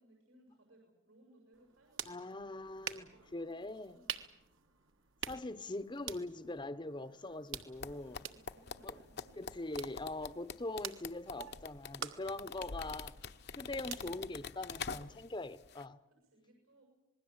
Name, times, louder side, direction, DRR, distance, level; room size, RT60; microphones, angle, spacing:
voice 1, 0.0-2.4 3.0-4.3 7.8-9.9 10.2-10.4 12.2-12.7 16.1-16.8, right 1 dB, 80° right, 7.5 m, -66 dB
sound 1, 1.5-15.3, right 8 dB, 60° right, 1.6 m, -49 dB
voice 2, 2.1-3.1 3.3-4.0 5.3-8.2 8.8-9.0 9.4-13.2 13.5-16.0, left 2 dB, 20° left, 0.8 m, -42 dB
sound 2, 7.8-15.4 15.6-15.8, left 5 dB, 50° left, 0.9 m, -45 dB
27.0 x 20.5 x 8.0 m
head